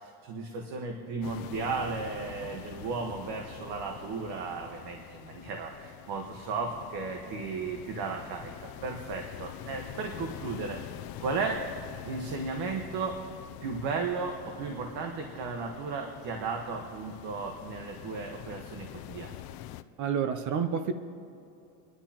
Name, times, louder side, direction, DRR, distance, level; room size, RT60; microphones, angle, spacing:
voice 1, 0.0-8.5 8.8-10.8 11.2-11.6 12.0-13.2 13.6-19.4, right 4 dB, 65° right, 2 dB, 1.4 m, -35 dB
sound 1, 1.2-19.8, left 13 dB, 60° left, 0.6 m, -45 dB
voice 2, 20.0-20.9, right 7 dB, 45° right, 10 dB, 0.7 m, -29 dB
27.5 x 11.0 x 3.0 m, 2.7 s
cardioid pair, 150°, 42 cm